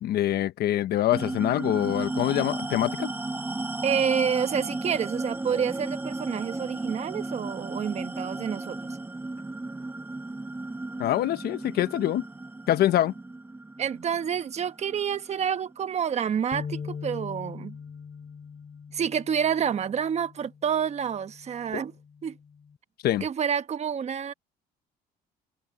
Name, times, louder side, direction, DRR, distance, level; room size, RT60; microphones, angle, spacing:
voice 1, 0.0-3.1 11.0-12.2 12.7-13.1 21.7-21.8 23.0-23.2, left 13 dB, 70° left, 1.1 m, -25 dB
sound 1, 1.1-15.9, right 2 dB, 10° right, 1.0 m, -35 dB
voice 2, 3.8-9.0 13.8-17.8 18.9-21.9 22.2-22.4 23.2-24.3, right 7 dB, 40° right, 1.2 m, -28 dB
sound 2, 16.5-22.8, left 6 dB, 35° left, 3.3 m, -42 dB
cardioid pair, 110°, 17 cm